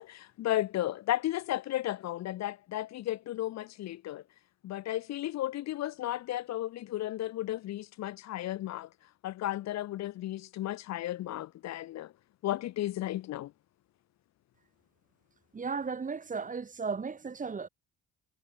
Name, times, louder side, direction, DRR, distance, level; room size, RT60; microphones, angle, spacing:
voice 1, 0.0-4.2 4.6-8.9 9.2-12.1 12.4-13.5, left 14 dB, 60° left, 0.5 m, -34 dB
voice 2, 15.5-17.7, right 5 dB, 25° right, 1.0 m, -35 dB
cardioid pair, 90°, 30 cm